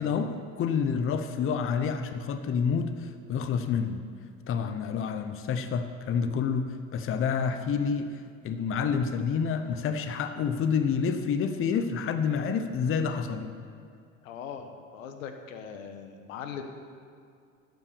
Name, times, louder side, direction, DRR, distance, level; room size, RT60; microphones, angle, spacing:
voice 1, 0.0-4.1 4.5-13.5, left 6 dB, 35° left, 9 dB, 0.8 m, -28 dB
voice 2, 14.2-16.6, left 7 dB, 85° left, 6 dB, 1.1 m, -40 dB
11.5 x 6.0 x 6.8 m, 2.3 s
hypercardioid pair, 90°, 39 cm